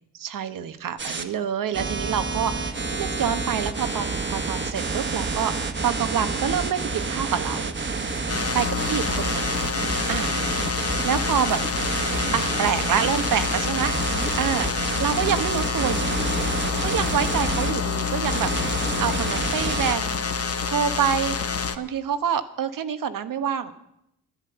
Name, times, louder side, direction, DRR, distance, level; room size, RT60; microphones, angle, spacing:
voice 1, 0.1-5.5 5.8-7.8 8.5-9.6 10.1-10.3 11.0-11.6 12.3-16.4 16.7-20.4 20.7-21.4 21.8-23.7, right 8 dB, 65° right, 11 dB, 1.2 m, -27 dB
sound 1, 1.0-1.2 1.7-17.7 18.2-19.9, right 3 dB, 30° right, 1.4 m, -29 dB
sound 2, 8.3-21.8, left 5 dB, 40° left, 1.1 m, -27 dB
11.5 x 10.5 x 8.0 m, 0.81 s
supercardioid pair, 60°, 35 cm